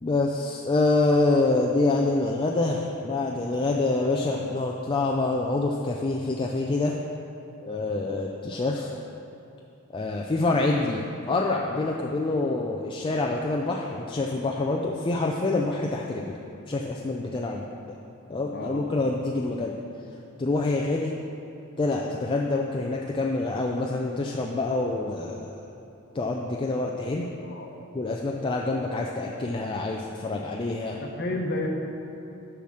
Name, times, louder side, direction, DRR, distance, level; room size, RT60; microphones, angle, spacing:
voice 1, 0.0-7.0 7.6-8.9 9.9-16.2 16.7-17.6 18.3-19.8 20.4-21.1 21.8-25.6 26.1-27.3 27.9-31.0, left 2 dB, 25° left, -1 dB, 0.4 m, -26 dB
voice 2, 31.0-31.7, left 2 dB, 50° left, 1 dB, 0.9 m, -31 dB
6.9 x 5.8 x 6.3 m, 2.8 s
head